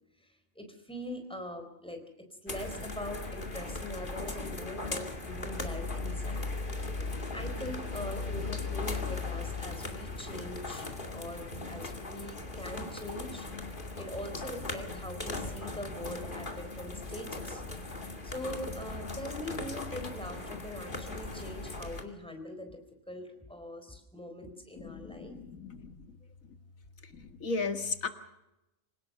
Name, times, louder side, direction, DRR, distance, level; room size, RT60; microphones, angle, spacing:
voice 1, 0.6-2.0 2.4-6.5 7.3-10.9 11.1-17.6 18.2-22.8 23.1-25.3, left 1 dB, 5° left, 5 dB, 4.1 m, -42 dB
sound 1, 2.5-22.0, left 3 dB, 40° left, 2.6 m, -38 dB
voice 2, 24.8-25.9 27.4-28.1, left 4 dB, 85° left, 7 dB, 2.3 m, -35 dB
26.5 x 17.5 x 6.8 m, 0.92 s
omnidirectional pair, 1.4 m